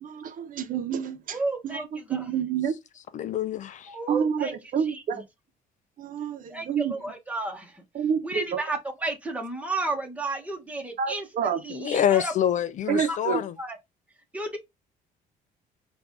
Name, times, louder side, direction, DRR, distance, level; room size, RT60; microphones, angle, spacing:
voice 1, 0.0-1.4 1.6-2.7 4.1-5.2 6.0-7.0 7.9-8.6 11.0-11.6 12.9-13.4, right 7 dB, 55° right, 0.9 m, -28 dB
voice 2, 1.3-2.2 3.9-4.5 4.9-5.0 6.5-7.8 8.2-11.3 11.6-12.3 13.1-13.2 13.6-13.8 14.3-14.6, right 2 dB, 10° right, 1.3 m, -32 dB
voice 3, 3.1-4.0 11.7-13.6, left 10 dB, 50° left, 0.4 m, -26 dB
4.6 x 2.6 x 3.6 m
cardioid pair, 110°, 17 cm